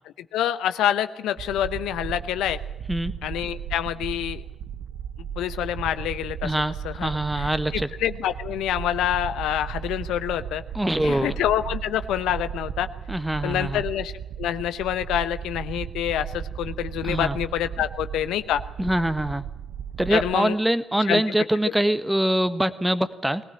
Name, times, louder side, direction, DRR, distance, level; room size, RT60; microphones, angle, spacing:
voice 1, 0.3-2.6 3.2-4.4 5.2-6.5 6.8-7.1 7.4-10.6 11.0-12.9 13.4-14.1 14.4-18.6 20.1-20.6 21.1-21.2, left 11 dB, 70° left, 12 dB, 0.8 m, -26 dB
sound 1, 1.4-20.4, right 8 dB, 65° right, 0.7 m, -35 dB
voice 2, 6.4-7.9 10.7-11.4 13.1-13.8 17.0-17.4 18.8-19.4 20.0-23.4, right 1 dB, 10° right, 13 dB, 1.4 m, -24 dB
21.0 x 18.5 x 8.9 m, 0.93 s
hypercardioid pair, 40°, 0 cm